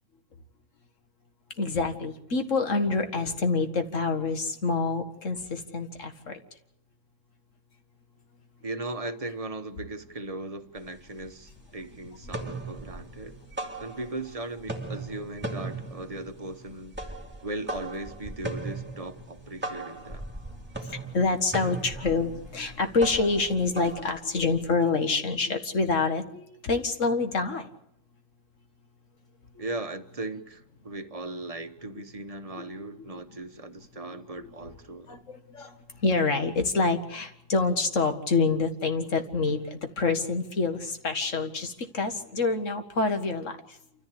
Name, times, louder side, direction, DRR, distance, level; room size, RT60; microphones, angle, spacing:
voice 1, 1.6-6.4 20.9-27.7 35.1-35.7 36.0-43.5, left 3 dB, 75° left, 2.2 m, -27 dB
voice 2, 8.6-13.4 13.8-17.0 17.4-20.2 29.6-35.2, right 2 dB, 30° right, 1.1 m, -38 dB
sound 1, 10.8-10.9 11.2-11.8 12.1-14.3 14.6-24.7, right 2 dB, 10° right, 2.4 m, -38 dB
28.5 x 14.0 x 8.4 m
omnidirectional pair, 1.3 m